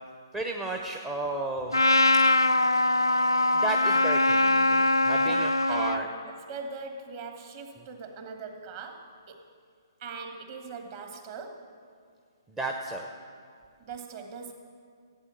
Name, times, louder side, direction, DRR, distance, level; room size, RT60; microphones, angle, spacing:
voice 1, 0.3-1.8 3.5-6.1 12.5-13.1, right 2 dB, 10° right, 2 dB, 0.8 m, -33 dB
Trumpet, 1.7-6.0, left 2 dB, 85° left, 0.5 m, -22 dB
voice 2, 5.2-9.4 10.0-11.7 13.8-14.5, right 4 dB, 35° right, 5 dB, 1.6 m, -41 dB
15.0 x 8.8 x 7.5 m, 2.2 s
figure-of-eight pair, 130°, 2 cm